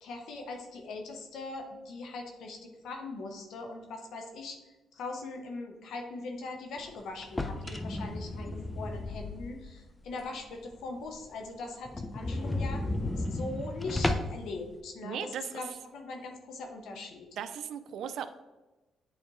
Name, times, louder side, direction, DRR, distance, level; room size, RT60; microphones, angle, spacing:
voice 1, 0.0-4.6 4.9-12.8 13.2-17.3, left 3 dB, 75° left, 3 dB, 0.9 m, -41 dB
sound 1, 7.2-9.8 10.2-10.3 10.7-10.8 11.1-11.2 11.4-11.5 11.9-14.5, left 1 dB, 15° left, 0.6 m, -33 dB
voice 2, 15.0-15.6 17.4-18.3, right 8 dB, 75° right, 10 dB, 0.5 m, -37 dB
8.4 x 4.1 x 3.1 m, 1.1 s
cardioid pair, 90°, 0 cm